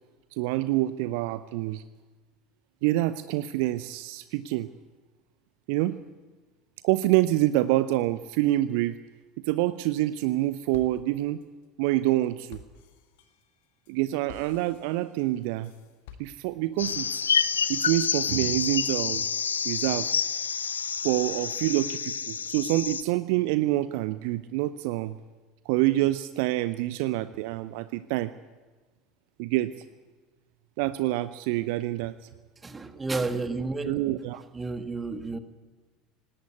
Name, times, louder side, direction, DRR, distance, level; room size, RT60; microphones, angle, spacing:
voice 1, 0.3-1.8 2.8-4.7 5.7-6.0 6.8-9.0 9.4-11.4 11.8-12.6 13.9-15.7 16.2-17.2 17.7-19.3 19.6-20.1 21.0-25.2 25.7-28.3 29.4-29.7 30.8-32.2 33.8-34.4, right 16 dB, 55° right, 14 dB, 0.6 m, -26 dB
sound 1, 9.9-10.4 10.7-16.8, left 8 dB, 60° left, 1.6 m, -52 dB
sound 2, 16.8-23.0, left 6 dB, 75° left, 0.6 m, -28 dB
voice 2, 32.6-33.9 34.5-35.4, right 3 dB, 20° right, 9 dB, 1.6 m, -31 dB
19.0 x 17.0 x 8.4 m, 1.3 s
figure-of-eight pair, 70°, 0 cm